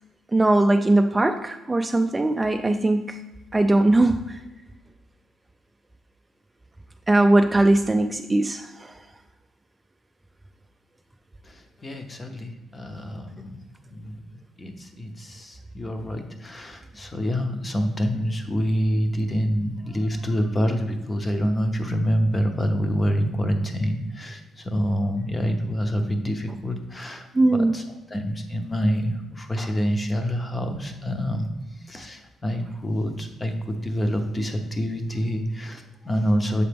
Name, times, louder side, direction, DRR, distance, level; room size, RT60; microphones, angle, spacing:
voice 1, 0.3-3.2 3.5-4.4 7.1-9.0 27.3-27.8, right 2 dB, 15° right, 7 dB, 0.3 m, -20 dB
voice 2, 11.4-13.6 13.9-14.2 14.6-36.6, equal, 25° left, 6 dB, 0.8 m, -27 dB
6.8 x 4.1 x 3.4 m, 1.0 s
cardioid pair, 90°, 0 cm